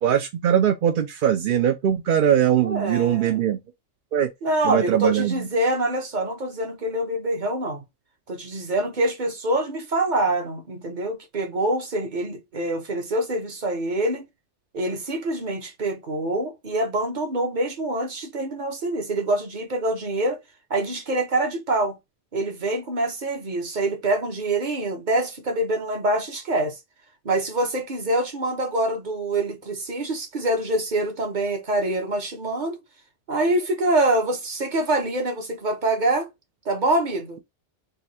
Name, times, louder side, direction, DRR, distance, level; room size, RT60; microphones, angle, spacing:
voice 1, 0.0-3.6 4.1-4.3 4.6-5.5, right 10 dB, 60° right, 0.6 m, -21 dB
voice 2, 2.6-3.4 4.4-7.8 8.3-14.3 14.7-20.4 20.7-22.0 22.3-26.8 27.2-32.8 33.3-36.3 36.6-37.4, right 1 dB, 40° right, 1.1 m, -25 dB
4.0 x 2.5 x 4.1 m
omnidirectional pair, 1.2 m